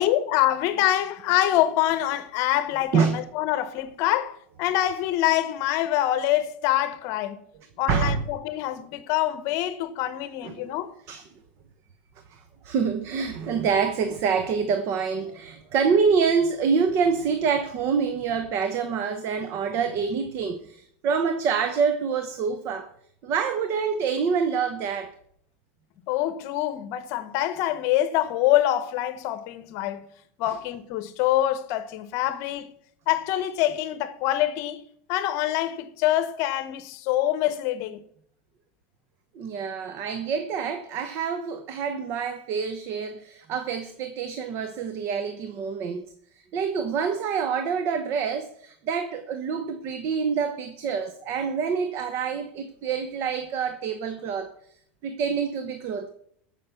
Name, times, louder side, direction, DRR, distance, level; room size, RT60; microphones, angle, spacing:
voice 1, 0.0-7.4 7.8-10.9 26.1-30.1 30.4-32.7 33.1-34.8 35.1-38.0, left 13 dB, 55° left, 0.9 m, -25 dB
voice 2, 7.9-8.2 10.4-10.7 11.1-11.2 12.3-22.9 23.2-25.1 30.5-30.6 39.3-46.1 46.5-54.5 55.0-56.1, right 6 dB, 45° right, 0.9 m, -26 dB
15.0 x 6.2 x 5.7 m
supercardioid pair, 140°, 6 cm